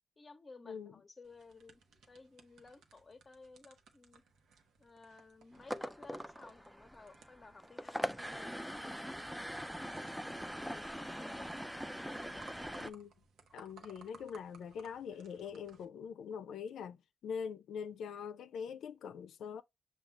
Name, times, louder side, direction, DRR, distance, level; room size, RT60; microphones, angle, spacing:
voice 1, 0.2-1.8 2.1-4.2 4.8-11.5, left 3 dB, 30° left, 0.8 m, -56 dB
sound 1, 1.2-15.8, right 5 dB, 80° right, 0.9 m, -62 dB
sound 2, 5.5-12.9, equal, ahead, 0.4 m, -42 dB
voice 2, 12.8-13.1 13.5-19.6, left 7 dB, 80° left, 0.4 m, -43 dB
5.9 x 2.4 x 3.3 m
cardioid pair, 90°, 0 cm